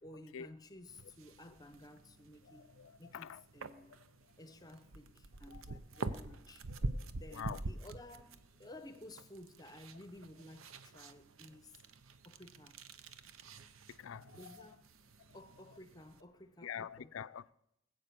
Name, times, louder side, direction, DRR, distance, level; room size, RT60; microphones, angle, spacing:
voice 1, 0.0-2.7 3.0-4.0 4.4-6.7 7.1-11.8 12.2-12.8 14.3-14.9 15.3-17.1, left 1 dB, 20° left, 0.7 m, -54 dB
sound 1, 0.9-16.2, right 2 dB, 90° right, 0.8 m, -47 dB
voice 2, 2.8-3.4 7.3-7.6 14.0-14.3 16.6-17.5, left 8 dB, 80° left, 0.4 m, -44 dB
19.5 x 8.1 x 6.9 m
head